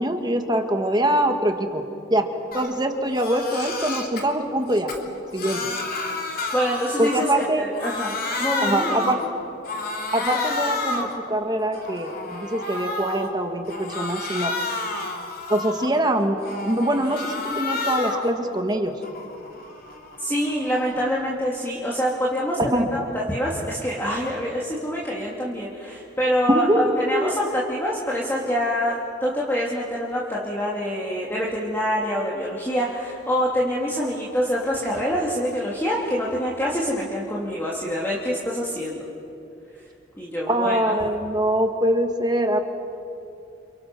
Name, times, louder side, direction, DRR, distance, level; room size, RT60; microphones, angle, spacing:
voice 1, 0.0-1.8 2.1-2.3 2.5-4.9 5.3-5.6 7.0-7.6 8.6-9.2 10.1-14.5 15.5-16.4 16.6-18.9 22.7-22.9 26.5-27.4 40.5-42.6, right 1 dB, 20° right, 5 dB, 2.0 m, -23 dB
Crying sobbing, 2.5-2.7 3.1-4.2 4.7-7.5 7.7-9.3 9.7-11.2 11.6-13.3 13.7-16.0 16.4-18.3 18.7-21.1, left 3 dB, 50° left, 3.3 m, -30 dB
voice 2, 6.5-8.1 8.4-9.3 20.2-39.0 40.2-40.9, equal, 10° left, -5 dB, 3.1 m, -26 dB
29.5 x 29.5 x 6.2 m, 2.8 s
head